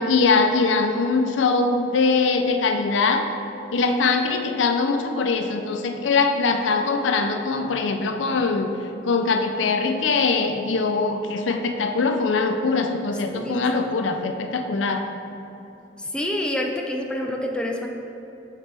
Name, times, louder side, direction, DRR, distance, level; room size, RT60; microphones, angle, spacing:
voice 1, 0.0-3.3 3.7-8.7 9.0-15.0, left 4 dB, 80° left, 6 dB, 0.5 m, -22 dB
voice 2, 13.3-13.8 16.0-17.9, left 1 dB, 5° left, 1 dB, 0.4 m, -27 dB
7.4 x 4.1 x 3.4 m, 2.9 s
head